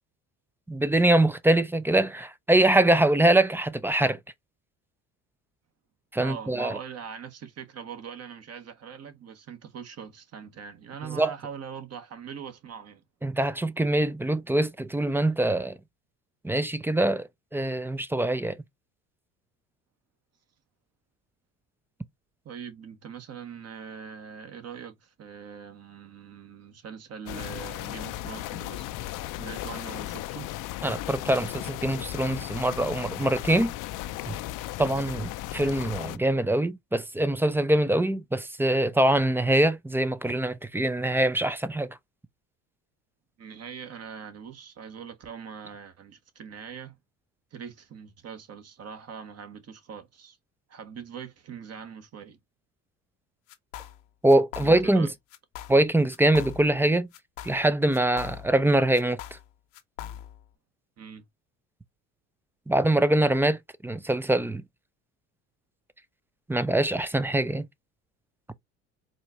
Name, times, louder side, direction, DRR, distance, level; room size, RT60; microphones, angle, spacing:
voice 1, 0.7-4.2 6.1-6.8 11.2-11.3 13.2-15.8 16.4-18.6 30.8-33.7 34.3-34.4 34.8-42.0 54.2-55.1 55.7-57.1 57.4-59.2 62.7-64.6 66.5-67.7, right 1 dB, 5° right, 0.4 m, -23 dB
voice 2, 6.2-13.0 22.4-28.9 29.3-30.5 43.4-47.0 47.5-50.4 50.7-52.4 54.6-55.1 61.0-61.2, right 7 dB, 45° right, 1.3 m, -42 dB
sound 1, 27.3-36.2, left 15 dB, 60° left, 0.5 m, -36 dB
sound 2, 53.5-54.0 54.3-55.0 55.3-55.8 56.1-56.8 57.1-58.6 58.9-60.5, left 11 dB, 80° left, 0.8 m, -41 dB
4.2 x 2.5 x 2.9 m
supercardioid pair, 80°, 37 cm